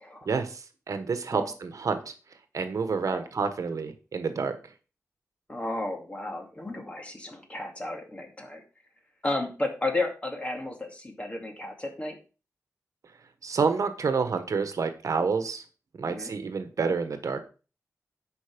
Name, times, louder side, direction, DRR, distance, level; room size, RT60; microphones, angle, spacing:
voice 1, 0.3-2.0 2.5-4.6 13.4-15.6 16.0-17.4, right 5 dB, 70° right, 9 dB, 1.2 m, -28 dB
voice 2, 5.5-8.6 9.2-12.2 16.1-16.3, left 2 dB, 20° left, 3 dB, 2.2 m, -33 dB
10.5 x 5.4 x 5.2 m, 0.35 s
wide cardioid pair, 130°, 6 cm